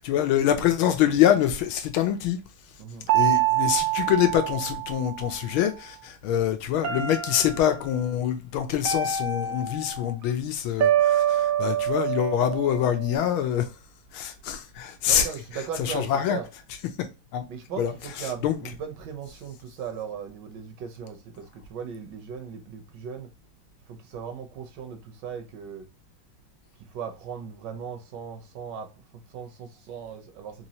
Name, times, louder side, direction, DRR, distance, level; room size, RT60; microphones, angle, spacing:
voice 1, 0.0-2.4 3.1-13.7 14.1-15.3 15.8-16.4 17.0-17.1 17.3-17.4 17.8-17.9 18.4-18.6, left 10 dB, 85° left, 1.5 m, -25 dB
voice 2, 2.8-3.4 15.1-16.5 17.5-23.3 23.9-25.9 26.8-30.7, right 7 dB, 70° right, 1.2 m, -38 dB
sound 1, 3.1-5.4 6.8-7.9 8.8-10.1 10.8-13.2, right 11 dB, 85° right, 0.7 m, -26 dB
4.0 x 3.0 x 2.7 m
omnidirectional pair, 2.2 m